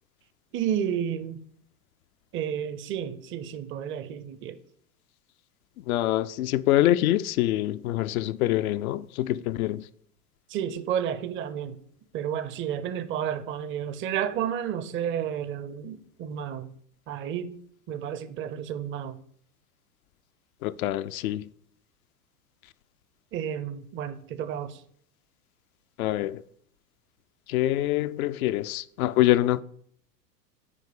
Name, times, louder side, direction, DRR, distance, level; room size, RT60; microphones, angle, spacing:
voice 1, 0.5-1.4 2.3-4.6 10.5-11.8 12.1-16.7 17.1-17.6 17.9-19.2 23.3-24.8, right 9 dB, 25° right, 0.6 m, -31 dB
voice 2, 5.9-9.9 20.6-21.5 26.0-26.4 27.5-29.6, left 14 dB, 60° left, 0.5 m, -25 dB
9.4 x 3.1 x 6.6 m
hypercardioid pair, 95°, 49 cm